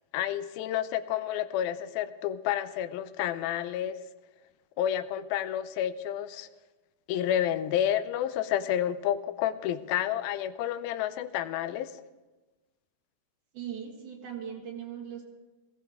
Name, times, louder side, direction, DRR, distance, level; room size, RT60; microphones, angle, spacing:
voice 1, 0.1-4.0 4.8-6.5 7.1-11.9, left 11 dB, 85° left, 12 dB, 2.5 m, -30 dB
voice 2, 13.5-15.2, right 8 dB, 60° right, 0 dB, 2.9 m, -39 dB
19.0 x 15.5 x 3.6 m, 1.2 s
omnidirectional pair, 4.2 m